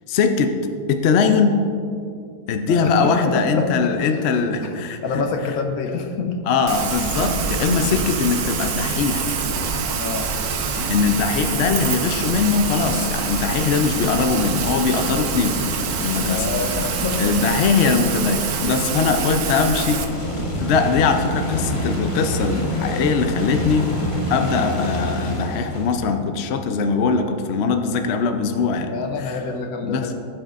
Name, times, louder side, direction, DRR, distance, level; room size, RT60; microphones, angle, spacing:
voice 1, 0.1-0.6 0.9-1.6 2.5-5.0 6.5-9.3 10.9-16.5 17.2-20.0 20.6-23.9 24.3-28.9 29.2-29.3 29.8-30.1, left 5 dB, 60° left, 6 dB, 0.7 m, -21 dB
voice 2, 2.7-3.9 4.6-6.4 7.8-7.9 10.0-10.3 16.3-17.3 28.9-30.2, left 4 dB, 75° left, 4 dB, 1.3 m, -26 dB
Rain, 6.7-20.0, right 5 dB, 85° right, 1.3 m, -25 dB
sound 1, 8.4-9.8 10.7-17.7 18.9-26.2, equal, 25° left, 1.2 m, -29 dB
14.5 x 7.4 x 2.5 m, 2.4 s
omnidirectional pair, 1.6 m